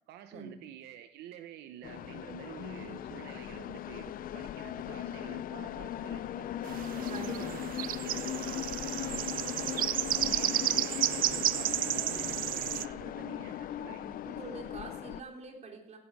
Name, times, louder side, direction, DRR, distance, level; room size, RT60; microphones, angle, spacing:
voice 1, 0.1-6.5 6.8-9.8 10.1-14.2, right 11 dB, 85° right, 9 dB, 0.8 m, -48 dB
sound 1, 1.8-15.2, left 11 dB, 55° left, 0.6 m, -39 dB
sound 2, 6.6-12.9, right 13 dB, 55° right, 0.5 m, -32 dB
voice 2, 7.1-7.6 14.2-16.0, right 3 dB, 40° right, 2 dB, 3.5 m, -44 dB
16.5 x 11.0 x 4.8 m, 0.84 s
cardioid pair, 110°, 17 cm